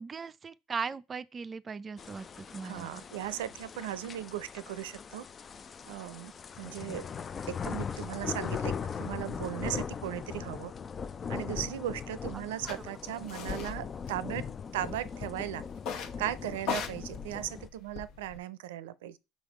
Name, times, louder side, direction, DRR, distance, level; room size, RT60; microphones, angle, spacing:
voice 1, 0.0-3.0 12.3-12.8 13.2-13.3, right 5 dB, 30° right, 0.4 m, -39 dB
sound 1, 2.0-17.7, left 6 dB, 35° left, 0.4 m, -39 dB
voice 2, 2.6-5.3 5.9-6.3 6.6-7.1 7.5-8.7 9.0-10.7 11.3-14.4 14.7-15.6 16.2-19.2, right 13 dB, 80° right, 0.5 m, -37 dB
sound 2, 12.7-12.8 13.3-13.8 14.1-14.8 15.8-16.2 16.6-18.4, left 6 dB, 60° left, 1.0 m, -38 dB
6.3 x 3.6 x 4.8 m
hypercardioid pair, 85°, 0 cm